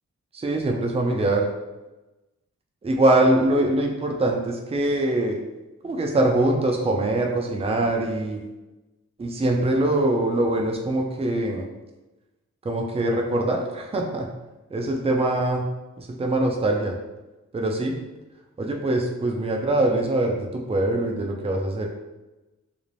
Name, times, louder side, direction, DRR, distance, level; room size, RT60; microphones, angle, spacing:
voice 1, 0.3-1.5 2.8-5.4 5.8-8.4 9.2-11.7 12.6-14.3 14.7-15.6 16.0-16.9 17.5-17.9 18.6-21.9, right 1 dB, 20° right, 1 dB, 0.4 m, -23 dB
2.5 x 2.0 x 3.1 m, 1.1 s
wide cardioid pair, 75°, 29 cm